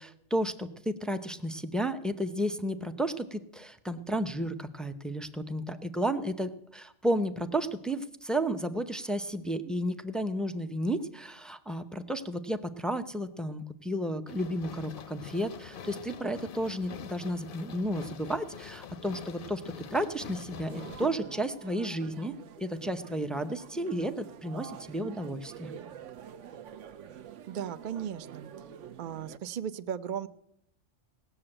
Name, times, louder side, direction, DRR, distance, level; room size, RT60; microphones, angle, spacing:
voice 1, 0.0-25.7, right 1 dB, ahead, 8 dB, 0.4 m, -32 dB
sound 1, 14.3-21.1, left 7 dB, 55° left, 0.7 m, -45 dB
sound 2, 20.7-29.4, right 9 dB, 75° right, 1.0 m, -46 dB
voice 2, 27.5-28.5 29.0-30.3, right 9 dB, 50° right, 12 dB, 0.6 m, -36 dB
17.5 x 6.9 x 8.8 m, 0.78 s
omnidirectional pair, 1.3 m